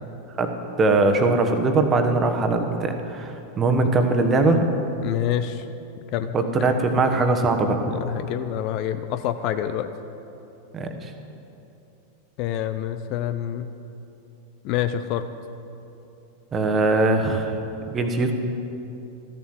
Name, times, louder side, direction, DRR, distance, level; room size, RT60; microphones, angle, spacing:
voice 1, 0.8-4.7 6.3-7.8 10.7-11.1 16.5-17.6 17.9-18.3, right 3 dB, 20° right, 5 dB, 1.2 m, -21 dB
voice 2, 5.0-5.7 6.1-6.7 7.9-9.9 12.4-13.7 14.6-15.3, left 10 dB, 40° left, 10 dB, 0.5 m, -27 dB
13.5 x 7.2 x 7.8 m, 2.8 s
figure-of-eight pair, 90°, 0 cm